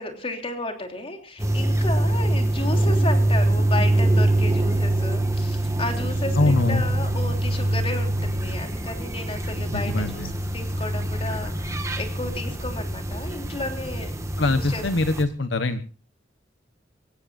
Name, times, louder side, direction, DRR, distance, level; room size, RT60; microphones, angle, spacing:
voice 1, 0.0-14.1 14.5-14.8, left 2 dB, 30° left, 4 dB, 3.3 m, -33 dB
sound 1, 1.4-15.2, right 1 dB, 15° right, 1.8 m, -24 dB
voice 2, 6.3-6.9 9.7-10.3 14.4-15.8, left 2 dB, 70° left, 9 dB, 1.1 m, -23 dB
25.0 x 15.0 x 2.6 m, 0.38 s
head